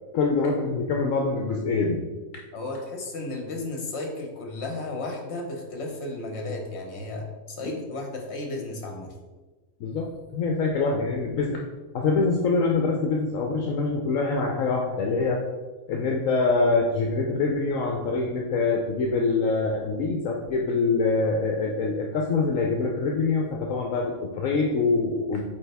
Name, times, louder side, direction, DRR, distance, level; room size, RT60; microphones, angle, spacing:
voice 1, 0.1-2.0 7.6-7.8 9.8-11.6 11.9-15.4 15.9-25.4, left 3 dB, 70° left, 1 dB, 1.0 m, -25 dB
voice 2, 2.5-9.1, left 2 dB, 55° left, 2 dB, 1.3 m, -34 dB
8.6 x 3.5 x 3.4 m, 1.3 s
omnidirectional pair, 1.5 m